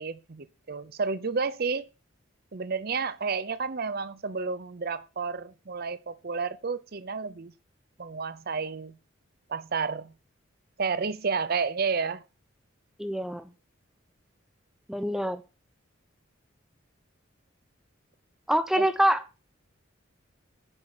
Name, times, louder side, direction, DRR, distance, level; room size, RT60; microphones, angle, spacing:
voice 1, 0.0-1.8 2.5-7.5 8.0-8.9 9.5-10.1 10.8-12.2 18.8-18.9, right 5 dB, 50° right, 0.7 m, -31 dB
voice 2, 13.0-13.5 14.9-15.4 18.5-19.2, right 1 dB, ahead, 0.9 m, -25 dB
9.9 x 5.8 x 6.6 m
head